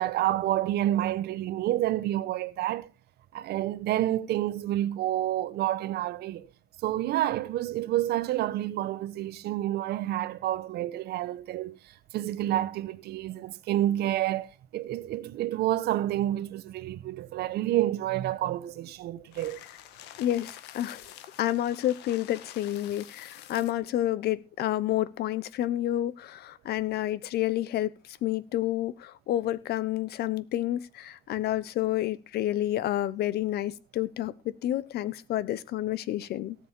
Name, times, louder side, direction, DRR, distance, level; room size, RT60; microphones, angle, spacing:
voice 1, 0.0-2.9 3.3-6.5 6.8-11.8 12.1-19.6, right 13 dB, 75° right, 1.1 m, -29 dB
sound 1, 19.3-23.9, left 12 dB, 90° left, 1.5 m, -48 dB
voice 2, 20.2-21.0 21.4-36.6, left 13 dB, 70° left, 1.0 m, -29 dB
17.5 x 7.7 x 4.5 m
cardioid pair, 110°, 17 cm